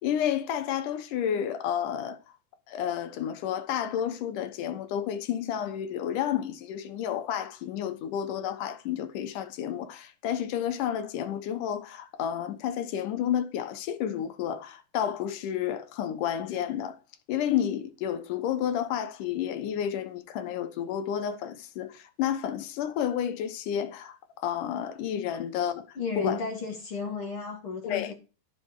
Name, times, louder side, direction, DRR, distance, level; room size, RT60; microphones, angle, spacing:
voice 1, 0.0-2.2 2.7-17.0 17.3-26.4 27.8-28.1, left 9 dB, 75° left, 2.5 m, -31 dB
voice 2, 26.0-28.1, left 4 dB, 45° left, 2.5 m, -33 dB
14.0 x 5.6 x 4.7 m
omnidirectional pair, 3.8 m